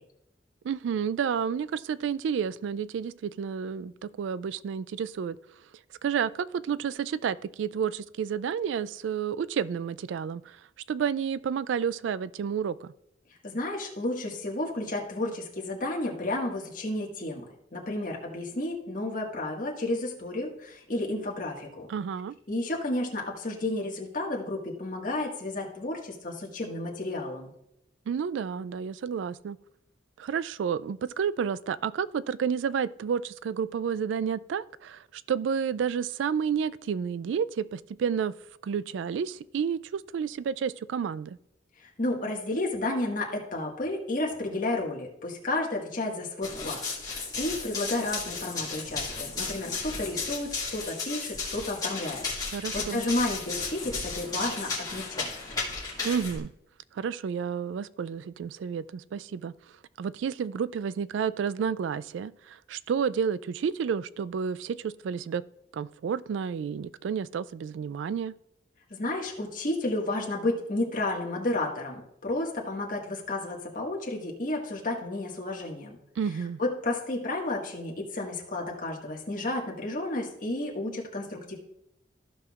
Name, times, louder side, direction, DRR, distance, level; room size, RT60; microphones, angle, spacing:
voice 1, 0.6-5.4 6.0-10.6 10.9-12.9 21.9-22.3 28.1-29.6 30.2-38.3 38.6-41.4 52.5-53.0 56.0-56.5 56.9-59.5 60.0-65.4 65.7-68.3 76.2-76.6, right 7 dB, 75° right, 0.3 m, -30 dB
voice 2, 13.4-17.4 17.7-21.9 22.5-27.5 41.8-46.8 47.1-55.3 68.9-76.0 76.6-81.5, left 2 dB, 45° left, 1.7 m, -32 dB
Run, 46.4-56.4, left 4 dB, 20° left, 2.1 m, -34 dB
14.5 x 6.0 x 2.4 m
head